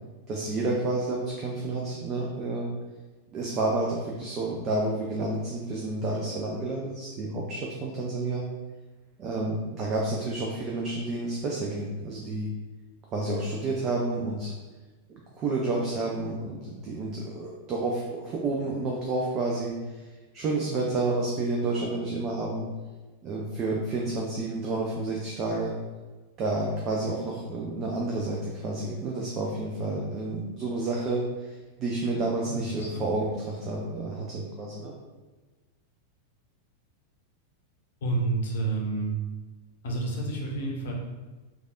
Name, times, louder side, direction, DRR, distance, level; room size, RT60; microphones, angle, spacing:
voice 1, 0.3-2.7 3.3-8.4 9.2-12.5 13.1-14.5 15.1-20.0 20.3-22.7 23.2-25.7 26.4-34.9, right 2 dB, 30° right, -2 dB, 0.4 m, -30 dB
voice 2, 32.4-33.1 38.0-39.1 39.8-40.9, right 3 dB, 60° left, -1 dB, 0.6 m, -29 dB
3.2 x 2.3 x 2.4 m, 1.2 s
figure-of-eight pair, 90°, 0 cm